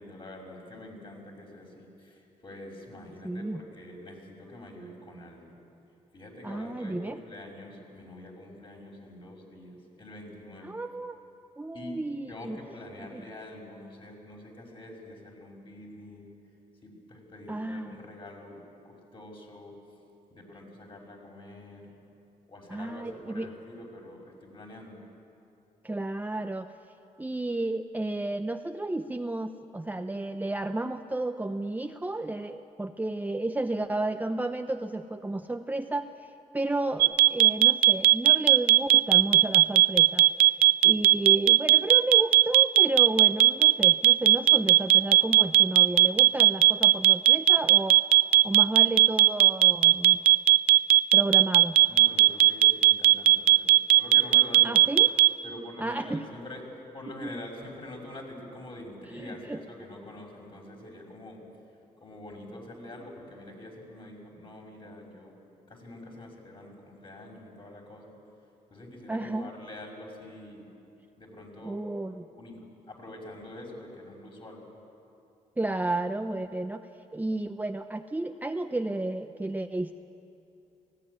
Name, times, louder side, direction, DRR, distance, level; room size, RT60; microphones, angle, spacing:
voice 1, 0.0-5.5 6.1-10.8 11.7-16.3 16.8-19.7 20.3-21.9 22.5-25.0 51.9-54.8 55.4-56.7 56.9-61.4 62.0-65.3 65.7-68.1 68.7-70.7 71.2-71.8 72.3-74.7, left 1 dB, 35° left, 0 dB, 5.8 m, -45 dB
voice 2, 3.2-3.6 6.4-7.2 10.6-11.2 11.6-12.6 13.0-13.2 17.5-18.0 22.7-23.5 25.8-26.7 27.2-48.0 48.4-50.2 51.1-51.8 54.6-55.1 55.8-56.3 57.2-57.3 59.2-59.6 69.1-69.5 71.6-72.3 75.6-76.9 77.1-79.9, right 2 dB, 10° right, 7 dB, 0.7 m, -32 dB
sound 1, 37.0-55.3, right 16 dB, 80° right, 0.5 m, -17 dB
18.5 x 16.0 x 9.8 m, 2.7 s
cardioid pair, 70°, 15 cm